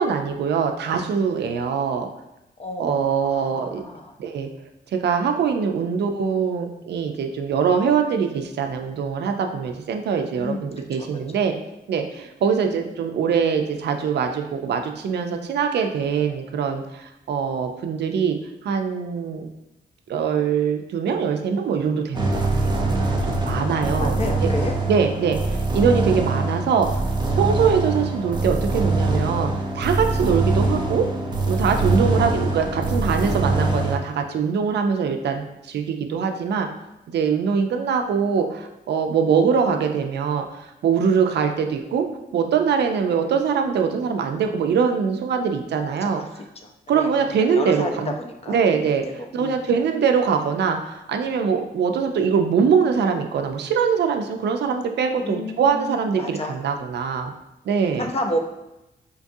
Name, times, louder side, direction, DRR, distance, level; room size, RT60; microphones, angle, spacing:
voice 1, 0.0-2.1 2.8-3.8 4.2-4.5 4.9-11.5 11.9-18.4 18.6-19.5 20.1-22.9 23.2-24.5 24.9-27.0 27.4-29.5 29.8-31.1 31.5-36.7 37.1-40.5 40.8-42.0 42.3-46.2 46.9-48.1 48.5-49.0 49.3-57.3 57.7-58.1, right 6 dB, 75° right, 4 dB, 0.4 m, -23 dB
voice 2, 2.6-4.2 10.4-11.1 19.4-19.5 23.6-24.8 25.2-25.3 46.0-46.3 46.6-48.6 49.3-49.6 55.2-56.6 58.0-58.4, left 1 dB, 35° left, 3 dB, 0.4 m, -31 dB
sound 1, 22.1-34.0, right 2 dB, 25° right, 0.6 m, -23 dB
4.5 x 2.4 x 2.6 m, 0.93 s
cardioid pair, 105°, 18 cm